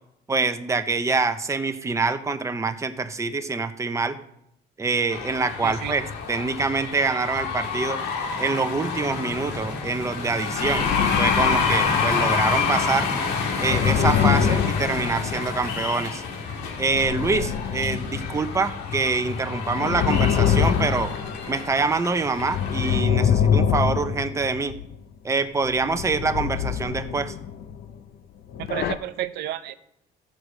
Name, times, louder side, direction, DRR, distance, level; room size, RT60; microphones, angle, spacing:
voice 1, 0.3-4.2 4.8-6.0 6.3-8.0 8.4-13.1 13.6-16.2 16.8-21.1 21.5-24.8 25.2-27.3, right 4 dB, 15° right, 8 dB, 0.8 m, -25 dB
sound 1, 5.1-23.0, left 5 dB, 85° left, 2.0 m, -28 dB
voice 2, 5.6-6.0 28.6-29.7, right 13 dB, 80° right, 10 dB, 0.7 m, -31 dB
sound 2, 9.4-9.7 10.5-12.8 13.4-15.7 16.8-18.9 19.4-21.8 22.3-24.9 25.6-27.9 28.5-29.0, left 8 dB, 65° left, 0.8 m, -25 dB
14.5 x 4.8 x 6.4 m, 0.77 s
cardioid pair, 110°, 17 cm